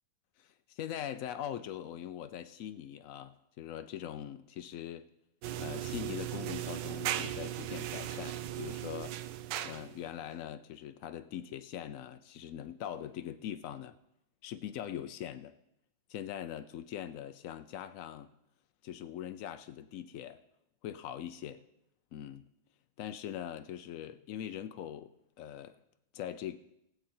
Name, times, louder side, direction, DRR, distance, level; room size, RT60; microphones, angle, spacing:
voice 1, 0.8-5.1 5.6-9.2 9.6-14.0 14.4-15.5 16.1-18.3 18.8-20.4 20.8-21.6 22.1-22.4 23.0-25.1 25.4-25.8 26.1-26.6, left 10 dB, 90° left, 0.7 m, -42 dB
sound 1, 5.4-10.1, right 12 dB, 75° right, 1.2 m, -37 dB
19.0 x 7.7 x 4.3 m
omnidirectional pair, 2.1 m